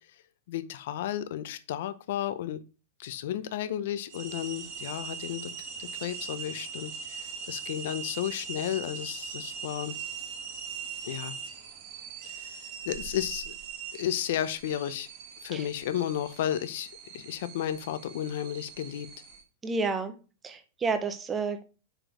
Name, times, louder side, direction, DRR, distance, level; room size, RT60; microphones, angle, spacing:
voice 1, 0.5-2.6 3.0-5.5 5.8-10.0 11.0-11.4 12.2-12.5 12.9-13.5 13.9-15.1 15.4-19.1, left 11 dB, 55° left, 13 dB, 0.7 m, -33 dB
sound 1, 4.1-19.4, right 6 dB, 35° right, 1.2 m, -41 dB
voice 2, 19.6-20.1 20.4-21.6, right 4 dB, 10° right, 8 dB, 0.7 m, -30 dB
6.0 x 5.0 x 5.0 m, 0.34 s
supercardioid pair, 175°, 0 cm